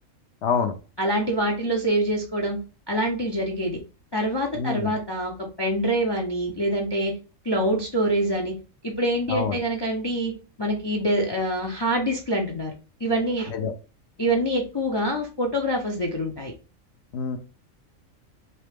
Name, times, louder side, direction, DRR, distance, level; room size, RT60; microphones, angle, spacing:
voice 1, 0.4-0.8 4.5-5.0 9.3-9.6 13.5-13.7 17.1-17.4, left 6 dB, 65° left, 7 dB, 0.8 m, -26 dB
voice 2, 1.0-2.6 2.9-3.8 4.1-7.1 7.4-8.5 8.8-10.3 10.6-12.7 13.0-13.5 14.2-16.5, right 1 dB, 30° left, 0 dB, 0.4 m, -25 dB
3.2 x 2.9 x 3.4 m, 0.33 s
omnidirectional pair, 1.3 m